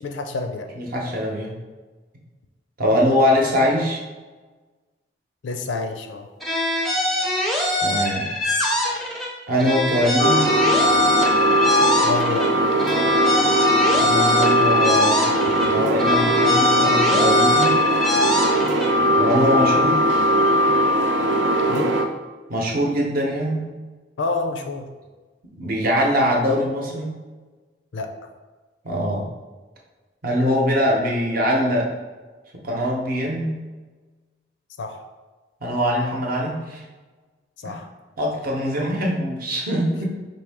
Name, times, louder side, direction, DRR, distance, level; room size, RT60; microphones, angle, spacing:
voice 1, 0.0-0.7 2.8-2.9 5.4-6.3 12.0-12.5 21.7-21.9 24.2-24.9 27.9-28.1 34.8-35.0 37.6-37.9, left 3 dB, 80° left, 6 dB, 0.5 m, -28 dB
voice 2, 0.8-1.6 2.8-4.0 7.8-8.3 9.5-10.5 14.0-15.2 15.6-17.8 19.1-20.0 22.5-23.7 25.6-27.1 28.8-29.3 30.2-31.9 32.5-33.6 35.6-36.8 37.6-37.8 38.2-40.1, equal, 50° right, -1 dB, 0.8 m, -22 dB
sound 1, 6.4-9.3 9.6-12.5 12.8-15.7 16.0-18.9, left 1 dB, ahead, 0.5 m, -23 dB
sound 2, 10.2-22.1, equal, 75° right, 0.4 m, -19 dB
4.6 x 2.7 x 3.5 m, 1.3 s
head